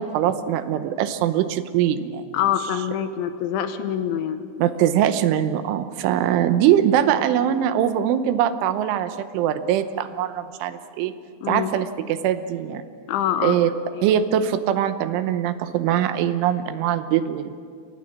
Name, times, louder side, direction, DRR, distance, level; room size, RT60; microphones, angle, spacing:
voice 1, 0.0-2.3 4.6-11.1 11.5-12.8 13.4-13.7 14.0-17.5, right 10 dB, 80° right, 11 dB, 3.3 m, -22 dB
voice 2, 2.3-4.5 11.4-11.7 13.1-13.6 13.9-14.1, left 10 dB, 75° left, 9 dB, 3.3 m, -25 dB
29.5 x 24.5 x 7.4 m, 2.2 s
omnidirectional pair, 5.8 m